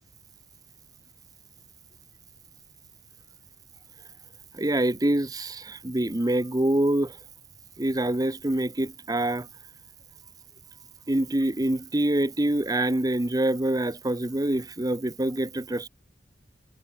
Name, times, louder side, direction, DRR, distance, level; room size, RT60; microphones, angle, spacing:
voice 1, 4.5-7.2 7.8-9.5 11.1-15.9, right 1 dB, 20° right, 0.9 m, -25 dB
head